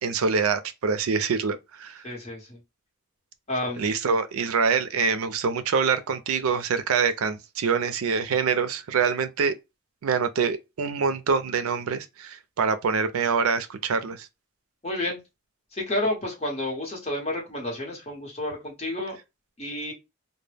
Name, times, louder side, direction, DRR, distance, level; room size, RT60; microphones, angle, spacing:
voice 1, 0.0-2.0 3.8-9.5 10.0-14.3, right 5 dB, 75° right, 0.4 m, -25 dB
voice 2, 2.0-2.6 3.5-3.8 14.8-15.2 15.7-19.2 19.6-19.9, left 1 dB, 30° left, 1.0 m, -30 dB
2.1 x 2.0 x 3.3 m
head